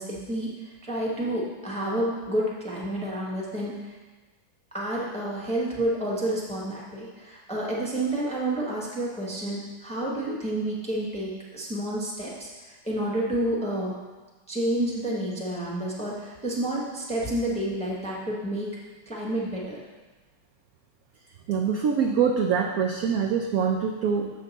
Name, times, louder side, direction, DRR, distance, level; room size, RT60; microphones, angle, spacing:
voice 1, 0.0-3.9 4.7-14.0 14.5-18.8 19.1-19.8, right 1 dB, 5° left, -4 dB, 0.8 m, -29 dB
voice 2, 21.5-24.3, right 6 dB, 80° right, 2 dB, 0.8 m, -24 dB
6.9 x 6.4 x 4.0 m, 1.3 s
omnidirectional pair, 2.1 m